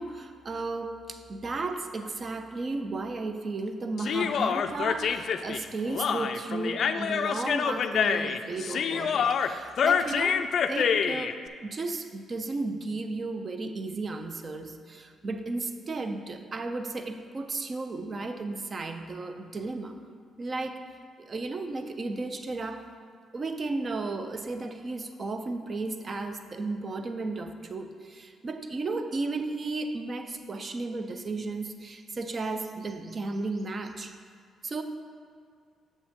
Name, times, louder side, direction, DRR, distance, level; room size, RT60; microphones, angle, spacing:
voice 1, 0.0-19.9 20.4-20.8 21.2-22.9 23.3-34.1 34.6-34.8, right 3 dB, 40° right, 8 dB, 0.5 m, -34 dB
Human voice, 4.0-11.3, left 7 dB, 60° left, 0.3 m, -27 dB
7.6 x 6.5 x 3.6 m, 2.1 s
cardioid pair, 90°, 0 cm